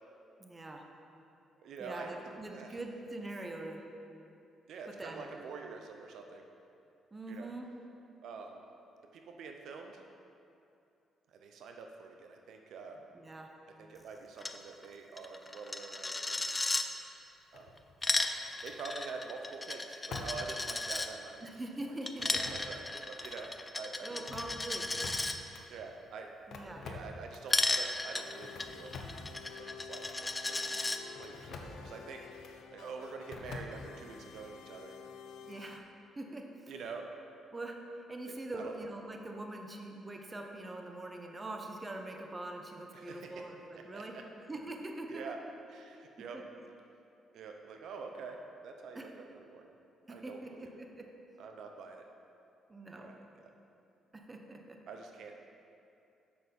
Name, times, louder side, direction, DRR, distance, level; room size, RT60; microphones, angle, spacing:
voice 1, 0.4-0.8 1.8-3.8 4.9-5.3 7.1-7.7 13.1-13.5 21.4-22.3 24.0-24.9 26.5-26.9 35.4-35.9 36.2-36.7 37.5-37.8 38.1-44.2 44.5-45.3 46.3-46.4 48.9-49.0 50.1-51.1 52.7-53.1 54.1-54.8, right 2 dB, 25° right, 2 dB, 0.9 m, -43 dB
voice 2, 1.6-2.8 4.7-6.4 7.3-7.5 8.2-8.6 9.1-10.0 11.3-13.0 13.8-16.6 17.5-17.7 18.6-21.4 22.3-24.2 25.7-26.3 26.6-28.9 29.4-30.8 31.2-32.3 32.7-34.9 36.7-37.0 38.5-38.7 42.9-43.4 43.9-44.2 45.1-45.4 45.7-46.4 47.3-48.4 48.6-49.7 50.1-50.8 51.4-52.0 52.9-53.5 54.9-55.4, right 4 dB, 75° right, 3 dB, 0.6 m, -46 dB
Coin (dropping), 14.4-14.6 14.8-14.9 15.2-16.8 17.8-21.1 22.1-25.3 27.5-31.0, left 2 dB, 20° left, 0.5 m, -35 dB
sound 1, 17.5-18.1 18.6-18.8 20.1-20.5 20.8-20.9 22.2-22.9 23.2-23.4 24.1-25.6 26.5-27.5 28.4-29.3 30.0-30.2 31.2-31.8 32.4-32.6 33.3-34.1, left 4 dB, 65° left, 0.8 m, -46 dB
Pirate's Bounty, 28.1-35.8, left 7 dB, 90° left, 0.4 m, -51 dB
6.9 x 6.3 x 5.3 m, 2.7 s
cardioid pair, 90°, 0 cm